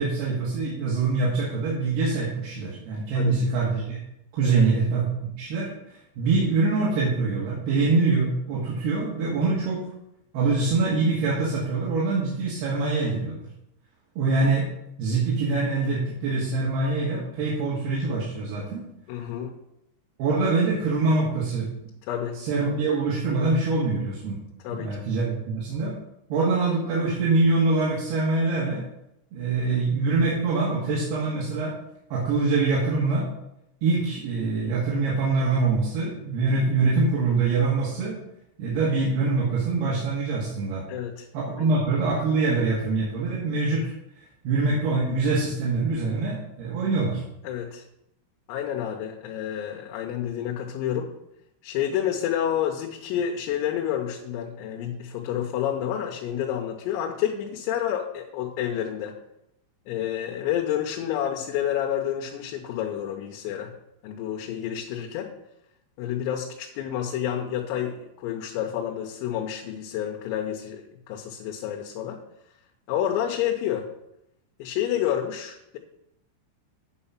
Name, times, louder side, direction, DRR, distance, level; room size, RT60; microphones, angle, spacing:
voice 1, 0.0-4.0 4.3-9.9 10.3-13.5 14.2-14.7 15.0-18.8 20.2-21.7 22.3-24.4 24.7-25.9 26.3-28.8 29.3-31.7 32.1-33.3 33.8-38.2 38.6-40.8 41.3-47.2, right 3 dB, 65° right, -5 dB, 3.2 m, -24 dB
voice 2, 19.1-19.5 22.1-22.4 24.6-25.0 40.9-41.3 41.6-41.7 47.5-47.8 48.5-51.1 51.6-59.1 59.9-63.7 64.0-65.3 66.0-72.2 72.9-73.9 74.6-75.8, left 10 dB, 90° left, 2 dB, 3.6 m, -29 dB
9.6 x 5.5 x 5.7 m, 0.82 s
omnidirectional pair, 5.9 m